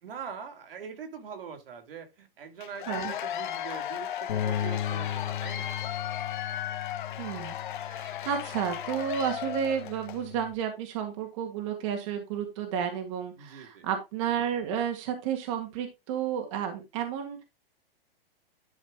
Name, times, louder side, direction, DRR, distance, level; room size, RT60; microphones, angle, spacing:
voice 1, 0.0-5.8 13.4-13.9, right 7 dB, 70° right, 2.5 m, -43 dB
Cheering / Applause / Crowd, 2.6-10.3, left 11 dB, 55° left, 1.2 m, -36 dB
Bass guitar, 4.3-10.5, left 10 dB, 75° left, 1.8 m, -36 dB
voice 2, 7.2-7.6 7.9-17.4, right 8 dB, 35° right, 1.9 m, -31 dB
11.5 x 5.0 x 3.6 m
supercardioid pair, 175°, 29 cm